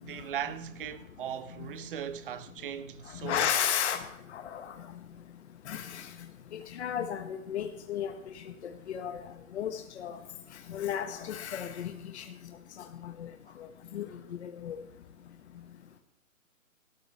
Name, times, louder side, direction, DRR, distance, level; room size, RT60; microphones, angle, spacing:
voice 1, 0.0-3.5, right 9 dB, 40° right, 0.9 m, -38 dB
voice 2, 3.2-4.0 4.3-4.7 5.7-6.1 6.5-8.4 8.9-9.2 9.5-10.2 10.7-12.2 12.8-13.3 13.9-14.8, left 9 dB, 55° left, 1.3 m, -34 dB
16.5 x 13.0 x 3.4 m
hypercardioid pair, 155°, 41 cm